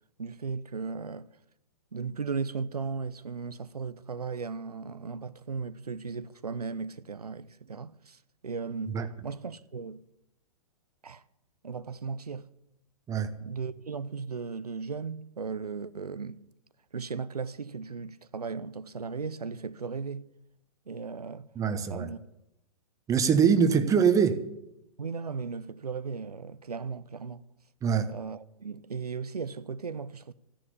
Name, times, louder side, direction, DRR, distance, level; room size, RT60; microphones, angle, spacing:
voice 1, 0.2-1.3 1.9-10.0 11.0-11.2 11.6-12.4 13.4-16.4 16.9-20.2 20.9-21.5 21.9-22.2 25.0-27.4 28.1-30.3, right 5 dB, 90° right, 0.6 m, -36 dB
voice 2, 21.5-22.1 23.1-24.4 27.8-28.1, right 7 dB, 15° right, 1.2 m, -23 dB
14.0 x 10.0 x 8.5 m
figure-of-eight pair, 115°, 19 cm